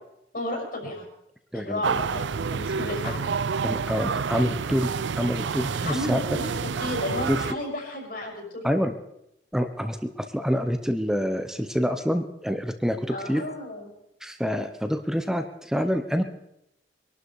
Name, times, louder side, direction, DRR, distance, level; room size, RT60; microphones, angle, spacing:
voice 1, 0.3-1.1 1.5-3.2 5.8-8.8 13.1-13.9, left 1 dB, 60° left, 0 dB, 5.9 m, -33 dB
voice 2, 1.5-2.0 3.6-6.2 7.3-7.4 8.6-8.9 9.5-13.4 14.2-16.2, equal, 5° right, 7 dB, 1.0 m, -27 dB
sound 1, 1.8-7.5, right 5 dB, 85° right, 0.5 m, -29 dB
23.0 x 12.0 x 4.9 m, 0.81 s
head